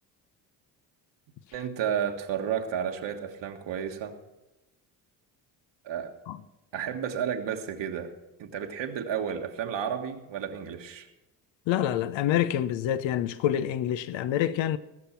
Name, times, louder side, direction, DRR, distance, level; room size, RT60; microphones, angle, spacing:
voice 1, 1.5-4.2 5.8-6.1 6.7-8.1 8.4-11.1, right 8 dB, 60° right, 1.6 m, -32 dB
voice 2, 11.7-14.8, left 11 dB, 65° left, 0.9 m, -27 dB
19.0 x 6.9 x 5.9 m
hypercardioid pair, 60°, 49 cm